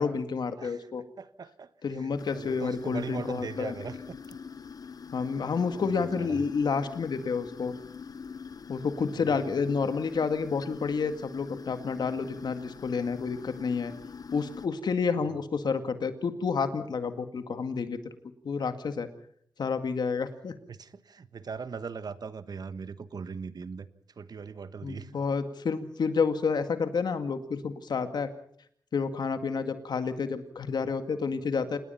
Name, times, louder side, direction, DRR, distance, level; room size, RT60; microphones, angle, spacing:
voice 1, 0.0-1.0 1.8-3.8 5.1-7.7 8.7-13.9 14.3-18.0 18.4-19.1 19.6-20.5 24.8-28.3 28.9-31.8, left 5 dB, 80° left, 9 dB, 2.0 m, -29 dB
voice 2, 0.6-0.9 1.2-1.7 2.0-4.4 6.2-6.4 9.1-9.4 20.7-23.9 24.2-25.1, right 5 dB, 70° right, 13 dB, 1.3 m, -40 dB
sound 1, 2.2-14.7, left 6 dB, 60° left, 1.0 m, -44 dB
27.5 x 20.0 x 5.7 m, 0.62 s
wide cardioid pair, 75°, 7 cm